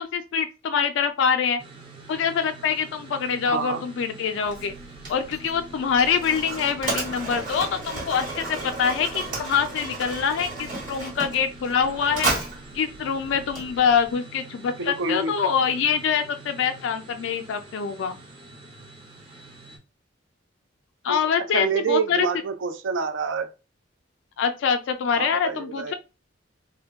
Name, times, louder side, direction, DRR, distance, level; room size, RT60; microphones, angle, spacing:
voice 1, 0.0-1.6 2.1-4.7 5.1-12.3 12.7-18.2 21.0-22.3 24.4-25.9, left 6 dB, 70° left, 0.3 m, -25 dB
sound 1, 1.6-19.8, right 3 dB, 25° right, 0.6 m, -45 dB
voice 2, 3.5-3.8 14.8-15.4 21.1-21.2 21.5-23.5 25.1-25.9, right 5 dB, 75° right, 0.4 m, -27 dB
Mechanisms, 4.5-14.1, right 2 dB, 45° right, 1.0 m, -33 dB
2.2 x 2.1 x 3.4 m
head